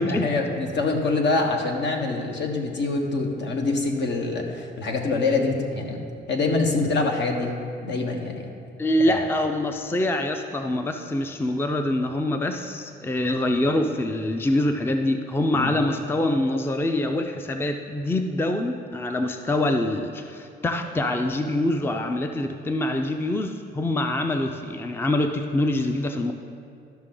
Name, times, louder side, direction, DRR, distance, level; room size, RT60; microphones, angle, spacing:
voice 1, 0.0-6.0 6.3-7.6 7.8-8.5 9.0-9.2 15.5-15.7, left 3 dB, 60° left, 2 dB, 1.2 m, -25 dB
voice 2, 8.8-26.3, left 1 dB, 10° left, 6 dB, 0.4 m, -25 dB
13.0 x 5.9 x 3.8 m, 2.4 s
cardioid pair, 90°, 20 cm